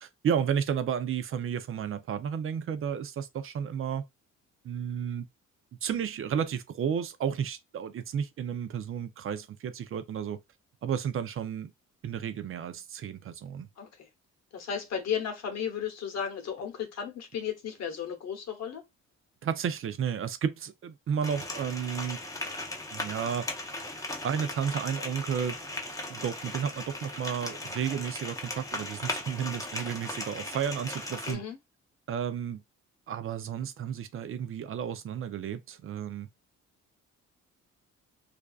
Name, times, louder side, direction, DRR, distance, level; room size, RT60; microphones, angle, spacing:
voice 1, 0.0-4.0 4.6-5.3 5.8-10.4 10.8-11.7 12.0-13.7 19.4-22.2 22.9-23.5 24.2-25.6 26.1-31.4 32.1-32.6 33.1-36.3, right 8 dB, 45° right, 0.5 m, -32 dB
voice 2, 13.8-14.1 14.5-18.8 31.3-31.6, left 7 dB, 60° left, 1.0 m, -34 dB
sound 1, 21.2-31.3, left 2 dB, 10° left, 0.7 m, -38 dB
2.5 x 2.2 x 2.3 m
cardioid pair, 90°, 30 cm